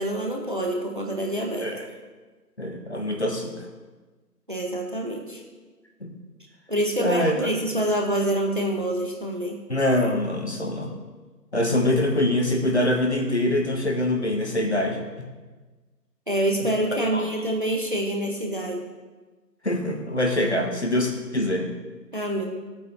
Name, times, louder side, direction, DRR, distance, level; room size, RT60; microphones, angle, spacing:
voice 1, 0.0-1.7 4.5-5.4 6.7-9.6 16.3-18.8 22.1-22.5, right 1 dB, 30° right, 1 dB, 1.3 m, -26 dB
voice 2, 2.6-3.6 6.0-6.1 7.0-7.4 9.7-10.9 11.5-15.3 16.9-17.2 19.6-21.7, left 1 dB, 40° left, 2 dB, 1.6 m, -24 dB
15.5 x 8.5 x 4.1 m, 1.3 s
figure-of-eight pair, 175°, 49 cm